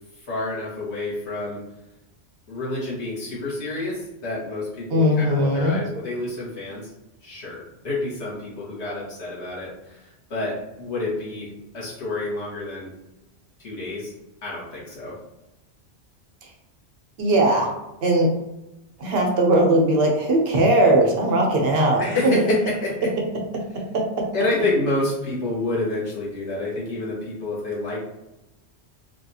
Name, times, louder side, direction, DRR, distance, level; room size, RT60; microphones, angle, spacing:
voice 1, 0.3-1.6 2.5-6.9 7.2-11.5 11.7-12.9 13.6-14.1 14.4-15.2 22.0-22.9 24.3-28.1, left 2 dB, 90° left, -6 dB, 1.5 m, -28 dB
voice 2, 4.9-5.8 17.2-17.7 18.0-18.3 19.0-22.4 23.9-24.0, right 1 dB, 65° right, 1 dB, 0.8 m, -19 dB
3.4 x 2.3 x 2.7 m, 0.95 s
omnidirectional pair, 1.1 m